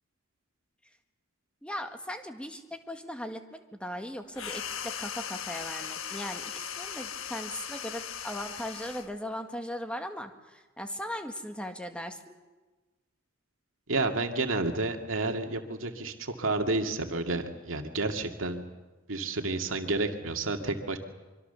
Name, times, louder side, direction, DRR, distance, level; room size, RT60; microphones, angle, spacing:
voice 1, 1.6-12.4, equal, 5° left, 6 dB, 1.6 m, -38 dB
sound 1, 4.3-9.1, left 8 dB, 85° left, 1.3 m, -38 dB
voice 2, 13.9-18.6 19.1-21.0, right 2 dB, 75° right, 4 dB, 2.2 m, -30 dB
24.5 x 24.5 x 6.9 m, 1.2 s
head